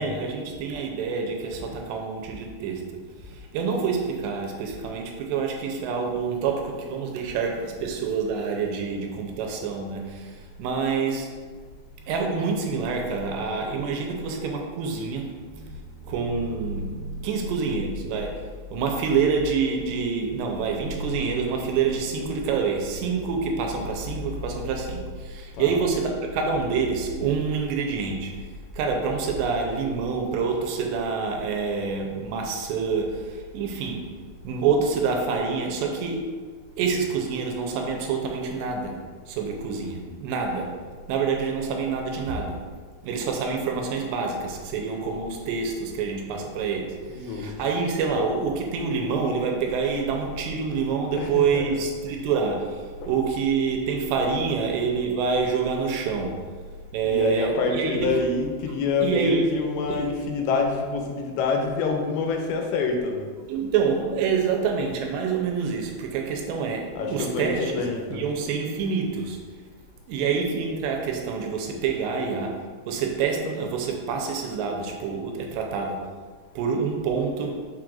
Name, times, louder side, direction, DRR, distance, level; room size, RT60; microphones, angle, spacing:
voice 1, 0.0-2.9 3.3-11.3 12.1-18.4 18.7-28.3 28.7-34.0 34.4-36.3 36.8-38.9 39.3-40.7 41.1-42.6 43.0-56.4 56.9-58.1 59.0-59.4 59.9-60.1 63.5-69.4 70.1-72.6 72.9-76.0 76.6-77.6, right 5 dB, 85° right, 2 dB, 2.9 m, -27 dB
voice 2, 47.1-47.5 51.1-52.2 53.0-53.2 57.0-63.3 67.0-68.2, left 4 dB, 85° left, 2 dB, 3.0 m, -27 dB
6.3 x 6.1 x 2.5 m, 1.5 s
omnidirectional pair, 5.0 m